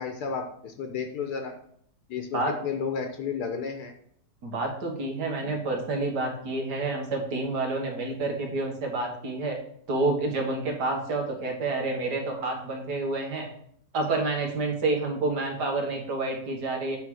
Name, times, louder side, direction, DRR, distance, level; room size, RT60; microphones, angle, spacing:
voice 1, 0.0-1.5 2.1-3.9, left 6 dB, 70° left, 5 dB, 1.3 m, -32 dB
voice 2, 4.4-9.6 9.9-13.5 13.9-17.0, right 2 dB, 70° right, 2 dB, 2.1 m, -29 dB
8.4 x 3.8 x 6.2 m, 0.65 s
omnidirectional pair, 1.8 m